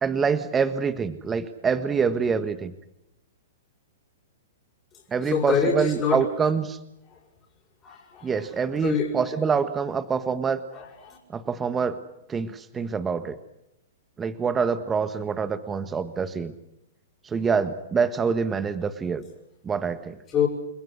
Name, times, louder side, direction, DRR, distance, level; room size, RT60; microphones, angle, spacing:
voice 1, 0.0-2.7 5.1-6.8 8.2-10.6 11.3-12.0 12.3-13.4 14.2-16.5 17.2-19.2 19.6-20.1, right 6 dB, 15° right, 12 dB, 1.5 m, -26 dB
voice 2, 5.3-6.2 7.8-8.3 8.8-9.1 10.7-11.2 20.3-20.5, left 6 dB, 25° left, -3 dB, 5.9 m, -25 dB
29.5 x 22.0 x 6.4 m, 0.83 s
figure-of-eight pair, 110°, 0 cm